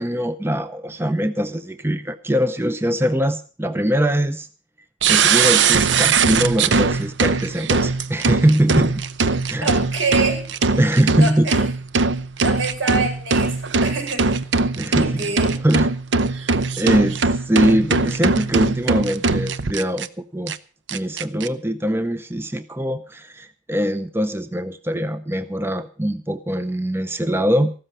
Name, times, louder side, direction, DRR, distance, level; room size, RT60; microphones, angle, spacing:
voice 1, 0.0-4.5 5.1-8.9 9.5-9.7 10.8-11.5 12.4-12.5 14.8-15.3 15.6-15.9 16.3-20.5 20.9-27.7, right 1 dB, 10° right, 11 dB, 0.6 m, -22 dB
sound 1, 5.0-20.1 20.5-20.6 20.9-21.5, right 4 dB, 65° right, 0.7 m, -20 dB
voice 2, 9.6-10.8 11.1-11.7 12.4-14.4 14.9-15.7, right 3 dB, 80° right, 3 dB, 5.5 m, -26 dB
14.5 x 13.0 x 5.5 m, 0.37 s
head